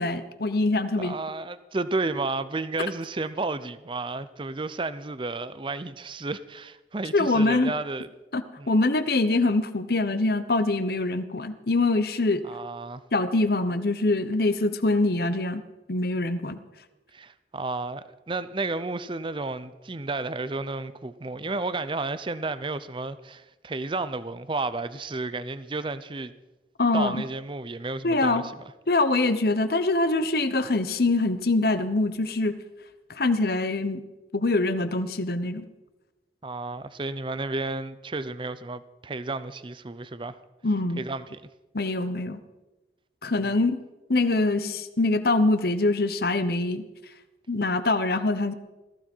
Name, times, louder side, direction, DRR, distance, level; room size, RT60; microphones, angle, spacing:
voice 1, 0.0-1.1 7.1-7.7 8.3-12.4 13.1-15.6 15.9-16.6 26.8-27.2 28.0-28.4 28.9-32.6 33.1-34.0 34.3-35.7 40.6-41.0 41.7-42.4 43.2-43.7 44.1-46.8 47.5-48.5, left 2 dB, 60° left, 1.0 m, -24 dB
voice 2, 1.0-8.1 8.6-8.7 12.4-13.0 17.1-26.3 26.9-28.6 36.4-40.4 41.0-41.4, right 3 dB, 30° right, 0.6 m, -32 dB
18.0 x 15.0 x 4.6 m
head